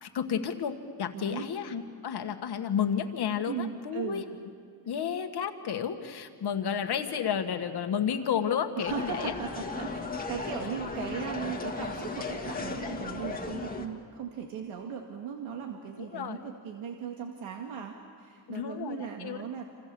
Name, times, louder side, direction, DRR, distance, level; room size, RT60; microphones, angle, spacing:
voice 1, 0.0-4.2 4.9-9.3 16.0-16.4 18.5-19.4, left 8 dB, 55° left, 6 dB, 1.8 m, -31 dB
voice 2, 1.1-1.5 3.5-4.3 4.8-4.9 8.8-19.6, right 7 dB, 90° right, 2 dB, 2.2 m, -38 dB
sound 1, 8.8-13.9, left 3 dB, 20° left, 1.9 m, -36 dB
27.5 x 27.5 x 7.0 m, 2.1 s
cardioid pair, 160°, 47 cm